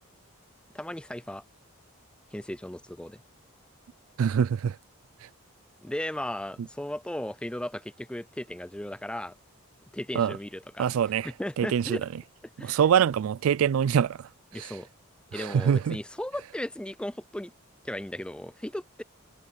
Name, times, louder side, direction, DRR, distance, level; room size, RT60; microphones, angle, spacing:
voice 1, 0.7-1.4 2.3-3.2 5.8-9.3 9.9-10.9 11.4-12.1 12.6-12.8 14.5-14.9 15.3-17.5 17.8-19.0, left 1 dB, 5° left, 0.4 m, -36 dB
voice 2, 4.2-4.8 10.1-10.3 10.8-11.3 11.6-12.0 12.6-14.2 14.6-14.7 15.3-16.0, right 8 dB, 75° right, 0.3 m, -24 dB
head